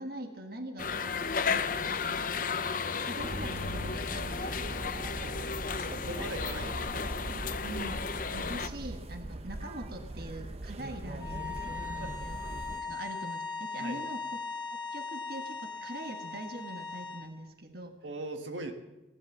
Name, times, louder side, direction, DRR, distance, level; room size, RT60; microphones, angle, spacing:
voice 1, 0.0-2.3 3.0-4.6 7.6-12.4 12.8-14.2 14.9-17.9, right 1 dB, 55° right, 5 dB, 1.6 m, -43 dB
sound 1, 0.8-8.7, left 5 dB, 45° left, 0.7 m, -34 dB
sound 2, 3.2-12.8, right 1 dB, 35° right, 0.9 m, -40 dB
voice 2, 5.8-7.1 11.8-12.1 13.8-14.0 18.0-18.7, right 2 dB, 90° right, 5 dB, 1.7 m, -40 dB
sound 3, 11.2-17.3, left 4 dB, 20° left, 2.8 m, -39 dB
17.0 x 11.5 x 7.2 m, 1.1 s
head